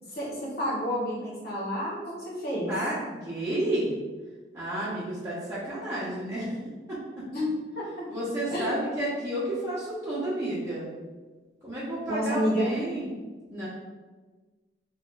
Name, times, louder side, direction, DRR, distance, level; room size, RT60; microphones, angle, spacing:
voice 1, 0.1-2.7 7.3-8.1 8.5-8.7 12.1-12.7, equal, 60° left, -7 dB, 1.2 m, -30 dB
voice 2, 2.7-3.9 4.5-6.5 6.9-7.2 8.1-10.9 11.6-13.1 13.5-13.7, right 1 dB, 15° right, -11 dB, 0.9 m, -31 dB
3.4 x 3.1 x 2.6 m, 1.3 s
head